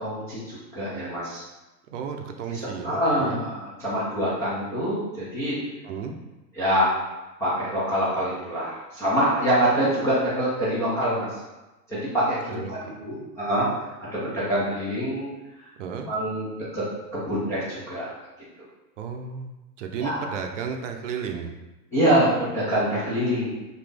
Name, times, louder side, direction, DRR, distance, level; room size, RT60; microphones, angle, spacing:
voice 1, 0.0-1.4 2.5-2.6 2.8-5.6 6.6-7.0 7.4-11.3 11.9-13.7 14.1-15.3 16.1-16.5 16.7-16.9 17.1-18.1 20.0-20.3 21.9-23.5, equal, 5° left, -12 dB, 0.4 m, -25 dB
voice 2, 1.9-3.4 5.8-6.1 12.5-12.9 15.8-16.1 19.0-21.5, right 6 dB, 45° right, 4 dB, 0.7 m, -33 dB
6.0 x 2.6 x 3.4 m, 1.0 s
hypercardioid pair, 130°, 50 cm